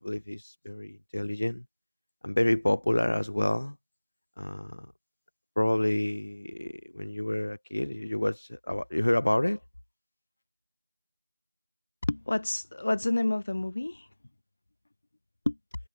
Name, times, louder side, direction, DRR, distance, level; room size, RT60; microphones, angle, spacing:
voice 1, 0.0-1.6 2.2-3.8 4.4-4.9 5.6-9.6, left 1 dB, 60° left, 6.3 m, -28 dB
voice 2, 12.1-14.1 15.5-15.6, left 2 dB, 35° left, 4.5 m, -29 dB
figure-of-eight pair, 175°, 0 cm